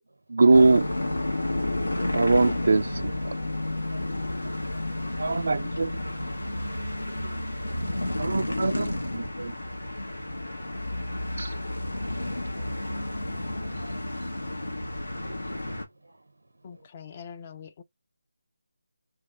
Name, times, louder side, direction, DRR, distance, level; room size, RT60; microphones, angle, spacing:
voice 1, 0.3-0.8 2.1-3.3 5.2-5.9 8.2-9.5 11.4-11.5, right 3 dB, 65° right, 0.4 m, -22 dB
sound 1, 0.5-15.8, left 1 dB, 90° left, 1.5 m, -31 dB
voice 2, 4.4-4.8 7.0-7.3 13.8-14.2 15.2-15.7 16.0-16.2 16.7-16.8, right 1 dB, 90° right, 0.8 m, -50 dB
voice 3, 16.6-17.8, left 7 dB, 30° left, 0.4 m, -43 dB
3.2 x 2.4 x 4.3 m
figure-of-eight pair, 165°, 0 cm